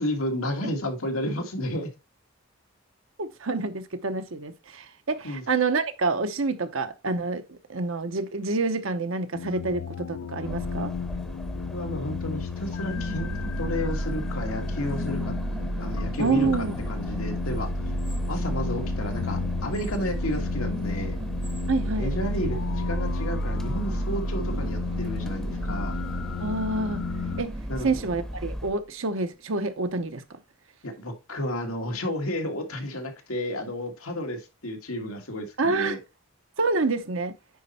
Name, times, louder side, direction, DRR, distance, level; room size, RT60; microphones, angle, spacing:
voice 1, 0.0-1.9 5.2-5.4 11.7-15.3 15.8-16.5 16.9-17.7 18.3-21.2 22.0-26.0 27.7-28.1 30.8-36.0, equal, 90° left, 1.8 m, -32 dB
voice 2, 3.2-10.9 16.2-16.7 21.7-22.1 26.4-27.0 27.4-27.5 27.8-30.2 35.6-36.0 36.6-37.3, right 3 dB, 70° right, 0.9 m, -27 dB
sound 1, 9.3-27.4, left 7 dB, 70° left, 0.3 m, -34 dB
sound 2, 10.4-28.7, equal, 5° left, 0.7 m, -40 dB
sound 3, 12.9-28.8, right 1 dB, 25° right, 0.4 m, -32 dB
9.6 x 4.3 x 4.2 m
head